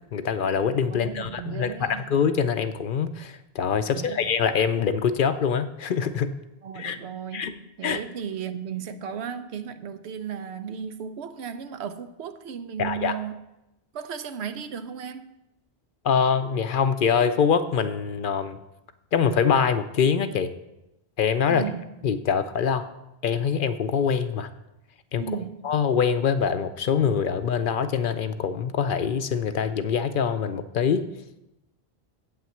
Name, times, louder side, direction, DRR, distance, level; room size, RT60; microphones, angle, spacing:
voice 1, 0.1-6.3 6.8-7.0 7.3-7.5 7.8-8.0 12.8-13.2 16.0-18.6 19.1-20.5 21.2-21.7 22.0-22.9 23.2-24.5 25.1-25.2 25.6-31.1, left 6 dB, 60° left, 0.6 m, -24 dB
voice 2, 0.9-2.0 3.8-4.2 6.6-13.4 13.9-15.3 21.5-21.9 25.2-25.7, right 7 dB, 80° right, 0.9 m, -35 dB
8.1 x 5.8 x 7.8 m
omnidirectional pair, 1.1 m